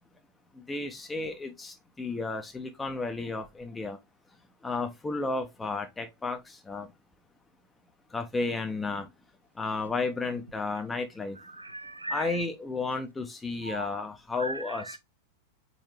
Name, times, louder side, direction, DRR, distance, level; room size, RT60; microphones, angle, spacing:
voice 1, 0.5-4.0 4.6-6.9 8.1-9.1 9.6-11.4 12.1-14.8, left 3 dB, 10° left, 0.6 m, -33 dB
voice 2, 11.3-12.5 13.6-14.0 14.3-15.0, right 2 dB, 85° right, 0.5 m, -38 dB
4.3 x 3.8 x 3.2 m
figure-of-eight pair, 90°, 0 cm